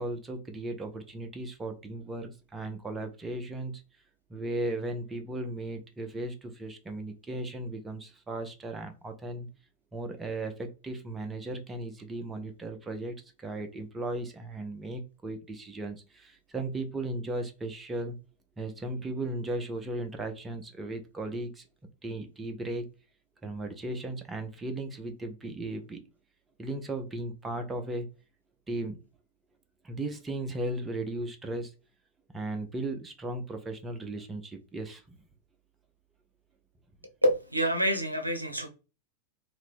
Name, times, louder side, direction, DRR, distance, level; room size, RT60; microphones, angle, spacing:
voice 1, 0.0-3.8 4.3-9.5 9.9-13.2 13.4-18.2 18.6-21.6 22.0-22.9 23.4-26.0 26.6-28.1 28.7-29.0 29.8-31.7 32.3-35.2, right 2 dB, 15° right, 5 dB, 0.6 m, -36 dB
voice 2, 37.2-38.7, equal, 85° right, 6 dB, 0.6 m, -27 dB
2.8 x 2.6 x 3.5 m, 0.31 s
figure-of-eight pair, 90°, 0 cm